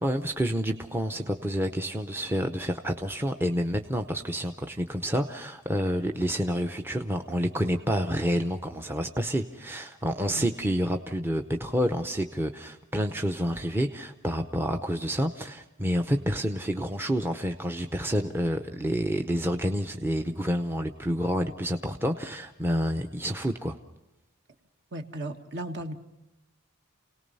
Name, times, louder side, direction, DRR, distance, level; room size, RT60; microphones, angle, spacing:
voice 1, 0.0-23.8, equal, 10° right, 5 dB, 0.7 m, -28 dB
voice 2, 24.9-25.9, right 1 dB, 50° right, 6 dB, 1.5 m, -35 dB
29.5 x 18.5 x 5.5 m, 0.91 s
head